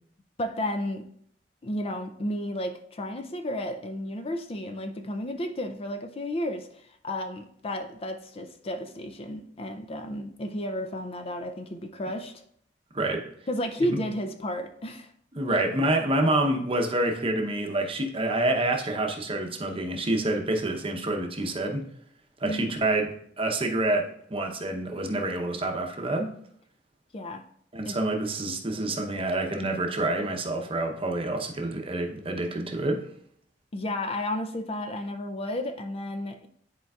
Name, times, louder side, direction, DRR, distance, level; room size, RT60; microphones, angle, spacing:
voice 1, 0.4-1.0 1.6-6.7 7.0-12.4 13.5-15.1 15.5-15.6 22.4-22.7 27.1-27.4 27.9-28.0 33.7-36.5, left 1 dB, 30° left, 6 dB, 0.4 m, -32 dB
voice 2, 15.3-21.8 22.4-26.3 27.7-33.1, right 2 dB, 30° right, 2 dB, 0.8 m, -27 dB
10.5 x 4.5 x 2.4 m, 0.67 s
head